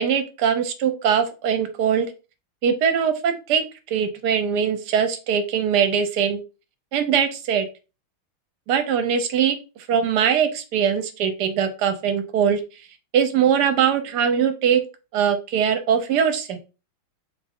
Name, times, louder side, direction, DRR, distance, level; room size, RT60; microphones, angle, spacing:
voice 1, 0.0-2.1 2.6-6.4 6.9-7.7 8.7-12.6 13.1-14.8 15.1-16.6, right 7 dB, 65° right, 9 dB, 1.1 m, -21 dB
4.1 x 3.3 x 3.6 m, 0.32 s
omnidirectional pair, 2.3 m